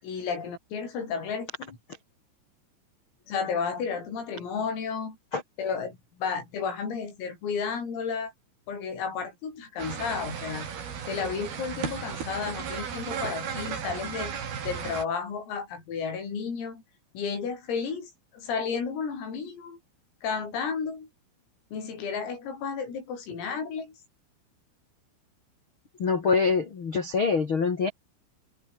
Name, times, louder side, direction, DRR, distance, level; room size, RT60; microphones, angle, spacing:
voice 1, 0.0-1.8 3.3-5.2 5.6-8.3 8.7-10.7 11.1-14.3 14.6-16.8 17.1-19.8 20.2-21.1 21.7-23.9, left 6 dB, 80° left, 10.0 m, -32 dB
sound 1, 9.8-15.0, right 7 dB, 50° right, 5.2 m, -35 dB
voice 2, 26.0-27.9, left 5 dB, 50° left, 1.5 m, -25 dB
open air
omnidirectional pair, 6.0 m